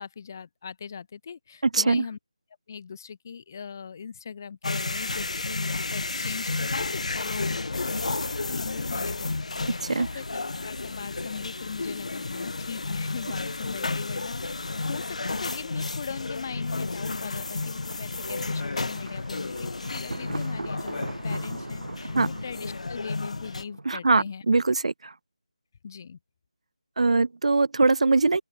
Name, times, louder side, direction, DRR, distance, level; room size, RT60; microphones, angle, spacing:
voice 1, 0.0-2.2 2.7-9.4 9.7-24.4 25.8-26.2, left 6 dB, 25° left, 0.6 m, -40 dB
voice 2, 1.7-2.0 9.8-10.1 22.1-22.3 23.9-25.1 27.0-28.4, right 3 dB, 60° right, 0.4 m, -22 dB
sound 1, 4.6-23.6, left 3 dB, 65° left, 0.7 m, -32 dB
Thunder, 18.5-24.3, right 2 dB, 90° right, 1.1 m, -40 dB
open air
figure-of-eight pair, 170°, 4 cm